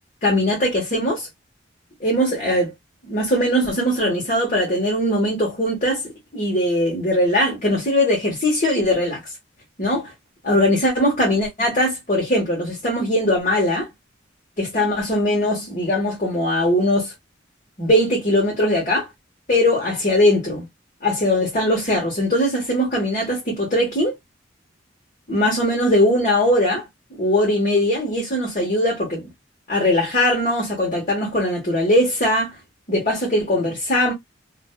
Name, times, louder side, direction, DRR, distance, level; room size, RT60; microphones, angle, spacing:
voice 1, 0.2-1.3 2.0-2.7 3.0-6.0 6.3-9.2 9.8-10.1 10.4-13.9 14.6-17.1 17.8-19.1 19.5-20.7 21.0-24.1 25.3-26.9 27.2-29.3 29.7-32.6 32.9-34.1, left 1 dB, 40° left, 1.1 m, -20 dB
2.5 x 2.2 x 2.3 m
head